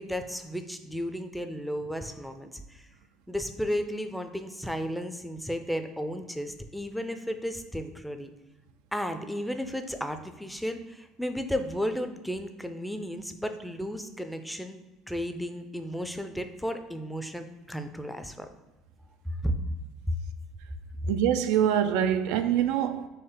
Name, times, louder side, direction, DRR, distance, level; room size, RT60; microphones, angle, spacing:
voice 1, 0.0-2.8 3.3-8.3 8.9-18.5 19.4-19.5, equal, ahead, 0.5 m, -34 dB
voice 2, 21.1-23.1, right 10 dB, 70° right, 0.3 m, -24 dB
4.4 x 3.1 x 3.6 m
hypercardioid pair, 65°, 0 cm